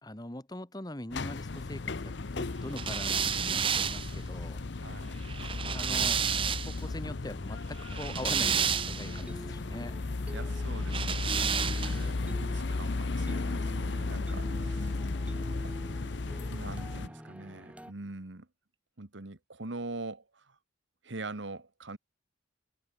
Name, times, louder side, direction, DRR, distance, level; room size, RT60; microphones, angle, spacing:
voice 1, 0.0-4.6 5.7-6.2 6.6-9.9, left 1 dB, 20° left, 1.6 m, -42 dB
sound 1, 1.1-17.1, left 3 dB, 65° left, 0.7 m, -35 dB
sound 2, 2.8-6.9 7.8-9.2 10.9-12.1, right 7 dB, 25° right, 0.7 m, -31 dB
voice 2, 4.8-5.2 10.3-15.0 15.6-15.8 16.5-18.5 19.0-20.6 21.0-22.0, right 2 dB, 75° right, 1.5 m, -43 dB
sound 3, 8.4-17.9, equal, 5° right, 4.0 m, -47 dB
head